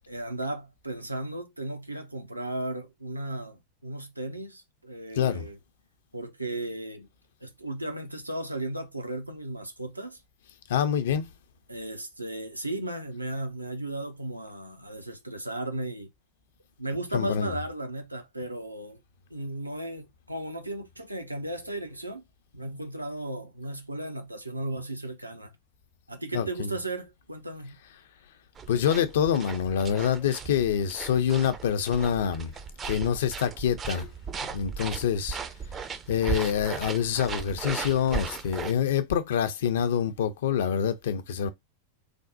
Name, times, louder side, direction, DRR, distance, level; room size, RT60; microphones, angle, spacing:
voice 1, 0.1-5.6 6.1-7.1 7.4-10.2 11.7-16.1 16.8-19.0 19.3-22.2 22.5-25.5 26.1-27.8, right 1 dB, 85° right, 0.5 m, -35 dB
voice 2, 10.7-11.3 17.1-17.5 26.3-26.7 28.7-32.5 32.8-34.1 34.5-35.4 36.1-41.5, left 8 dB, 60° left, 0.4 m, -26 dB
sound 1, 28.6-38.7, right 6 dB, 25° right, 0.4 m, -37 dB
3.3 x 2.0 x 2.6 m
figure-of-eight pair, 90°, 0 cm